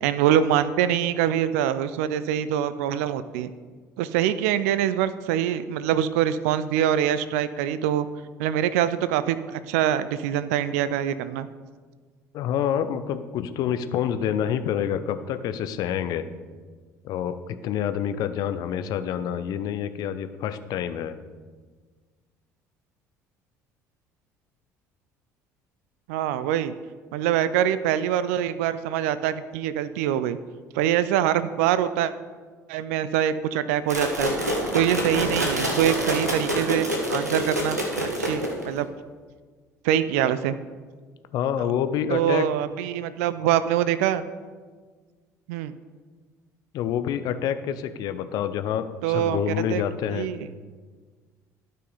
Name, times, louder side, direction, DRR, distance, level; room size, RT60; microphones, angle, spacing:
voice 1, 0.0-3.5 4.0-8.1 8.4-11.5 26.1-26.7 27.1-30.4 30.7-32.1 32.7-34.3 34.7-37.8 38.2-38.9 39.8-40.6 42.1-44.2 45.5-45.7 49.0-49.4 49.7-49.8 50.1-50.4, right 10 dB, 60° right, 14 dB, 0.4 m, -24 dB
voice 2, 12.3-16.2 17.0-21.1 41.3-42.4 46.7-50.3, left 9 dB, 50° left, 11 dB, 0.6 m, -27 dB
sound 1, 33.9-38.8, equal, 90° right, 1.1 m, -26 dB
12.0 x 5.7 x 4.0 m, 1.5 s
figure-of-eight pair, 55°, 9 cm